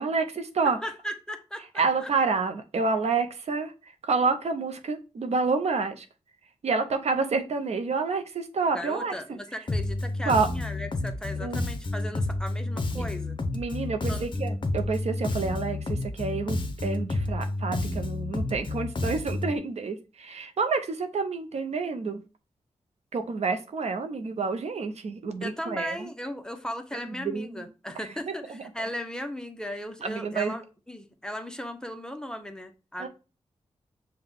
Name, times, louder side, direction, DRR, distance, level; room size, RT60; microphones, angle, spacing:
voice 1, 0.0-0.8 1.8-3.7 4.0-6.0 6.6-9.1 10.3-10.5 11.4-11.6 13.5-22.2 23.1-26.1 26.9-27.6 28.3-28.6 30.0-30.5 33.0-33.1, right 4 dB, 70° right, 7 dB, 0.6 m, -28 dB
voice 2, 0.8-2.1 8.7-13.4 14.1-14.3 25.4-33.1, equal, 5° left, 6 dB, 0.6 m, -37 dB
Bass guitar, 9.7-19.6, left 2 dB, 45° left, 0.6 m, -30 dB
5.6 x 2.2 x 3.5 m, 0.31 s
cardioid pair, 70°, 12 cm